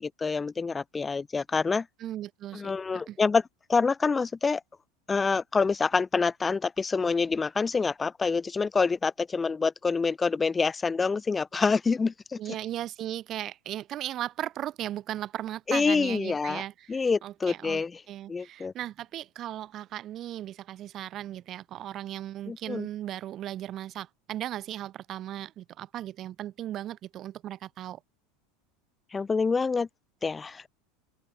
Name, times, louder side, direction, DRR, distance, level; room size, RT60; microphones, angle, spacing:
voice 1, 0.0-1.9 2.5-3.4 3.7-4.6 5.1-12.4 15.7-16.6 16.9-18.0 18.3-18.7 22.5-22.9 29.1-29.9 30.2-30.7, left 4 dB, 20° left, 0.4 m, -26 dB
voice 2, 2.0-2.7 3.1-3.2 12.4-28.0, right 12 dB, 45° right, 0.6 m, -37 dB
open air
hypercardioid pair, 95°, 0 cm